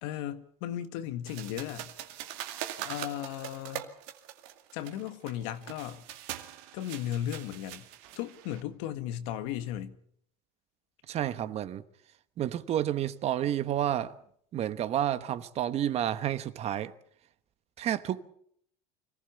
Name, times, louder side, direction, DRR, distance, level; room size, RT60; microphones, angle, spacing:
voice 1, 0.0-1.9 2.8-3.9 4.7-6.0 6.7-7.8 8.2-9.9, left 11 dB, 80° left, 1.7 m, -36 dB
sound 1, 1.3-8.6, right 12 dB, 75° right, 2.3 m, -42 dB
voice 2, 11.1-11.8 12.4-14.1 14.5-16.9 17.8-18.2, right 11 dB, 40° right, 1.1 m, -30 dB
26.0 x 15.5 x 7.1 m
supercardioid pair, 125°, 16 cm